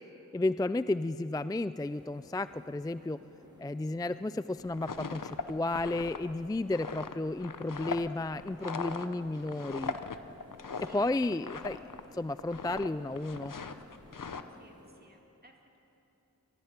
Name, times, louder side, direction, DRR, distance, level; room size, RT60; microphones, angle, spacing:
voice 1, 0.3-3.2 3.6-10.0 10.8-11.8 12.1-13.5, left 2 dB, 10° left, 14 dB, 0.4 m, -33 dB
sound 1, 1.7-14.9, left 1 dB, 15° right, 6.2 m, -56 dB
sound 2, 4.6-12.1 12.3-12.9 13.2-14.4, left 5 dB, 75° left, 0.9 m, -40 dB
voice 2, 14.6-15.8, right 2 dB, 30° right, 1 dB, 2.2 m, -61 dB
20.0 x 13.5 x 9.9 m, 2.9 s
wide cardioid pair, 40°, 32 cm